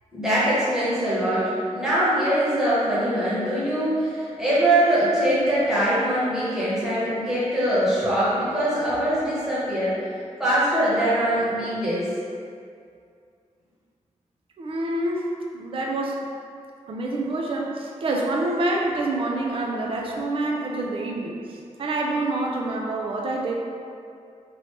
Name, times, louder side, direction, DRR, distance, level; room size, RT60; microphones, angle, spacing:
voice 1, 0.1-9.9 10.4-12.1, right 1 dB, 5° right, -11 dB, 1.1 m, -22 dB
voice 2, 14.6-15.3 15.5-16.2 16.9-23.5, right 2 dB, 50° right, -1 dB, 0.4 m, -27 dB
3.1 x 2.7 x 4.4 m, 2.4 s
wide cardioid pair, 150°, 12 cm